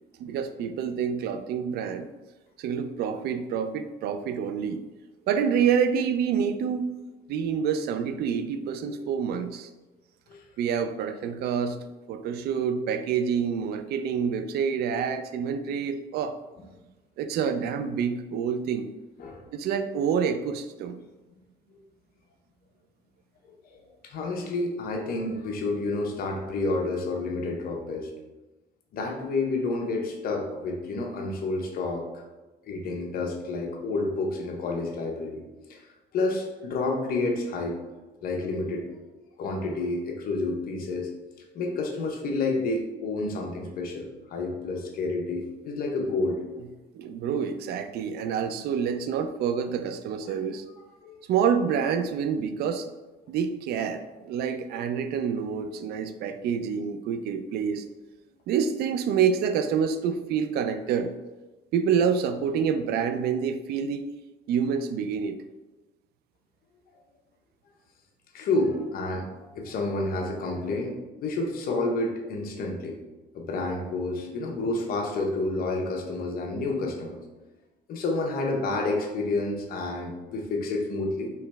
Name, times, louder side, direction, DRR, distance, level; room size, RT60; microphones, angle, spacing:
voice 1, 0.2-2.1 2.6-4.8 5.3-6.9 7.3-9.7 10.6-11.8 12.1-16.4 17.2-18.9 19.5-21.0 46.9-50.6 51.3-52.9 53.3-57.8 58.5-61.1 61.7-64.0 64.5-65.4, right 7 dB, 70° right, 9 dB, 0.4 m, -27 dB
voice 2, 23.6-28.1 28.9-32.1 32.6-35.4 35.7-35.8 36.1-37.8 38.2-38.8 39.4-41.1 41.5-46.4 51.0-51.2 68.3-69.3 69.5-73.0 73.3-77.2 77.9-81.3, left 2 dB, 60° left, 1 dB, 1.0 m, -29 dB
4.6 x 3.1 x 3.4 m, 1.1 s
cardioid pair, 110°, 17 cm